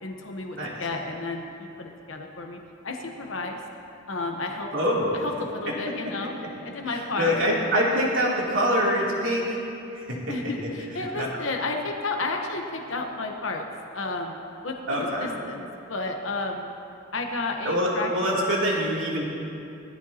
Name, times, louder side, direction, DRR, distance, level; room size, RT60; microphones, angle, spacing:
voice 1, 0.0-3.6 4.1-4.7 5.1-6.3 6.6-7.4 10.3-13.6 13.9-16.7 17.1-18.4, left 3 dB, 70° left, 2 dB, 1.1 m, -32 dB
voice 2, 4.7-5.1 6.9-9.6 9.9-10.3 11.2-11.3 14.9-15.3 17.6-19.2, equal, 75° right, -5 dB, 3.0 m, -25 dB
19.5 x 13.5 x 2.9 m, 2.6 s
head